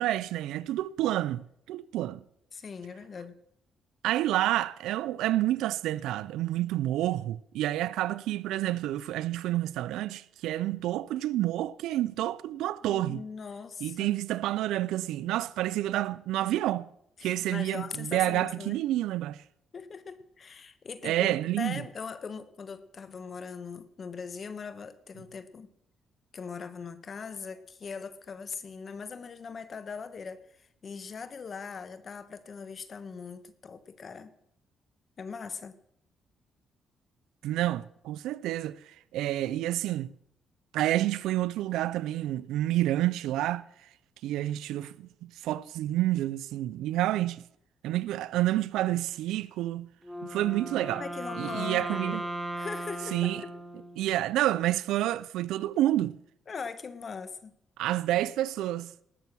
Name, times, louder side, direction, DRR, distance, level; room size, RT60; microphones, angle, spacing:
voice 1, 0.0-2.2 4.0-13.2 13.8-16.9 17.2-19.4 21.0-21.8 37.4-40.1 40.7-43.7 44.2-45.1 45.4-47.4 47.8-49.9 50.2-51.0 51.4-52.2 53.1-53.4 54.0-56.2 57.8-58.9, right 14 dB, 90° right, 0.4 m, -29 dB
voice 2, 2.5-3.3 12.8-14.1 17.2-18.8 19.7-25.7 26.3-34.3 35.2-35.8 51.0-52.2 52.5-53.5 56.5-57.5, left 5 dB, 45° left, 1.2 m, -40 dB
Wind instrument woodwind instrument, 50.0-54.3, right 1 dB, 5° right, 1.5 m, -37 dB
19.0 x 6.9 x 6.1 m
cardioid pair, 90°, 0 cm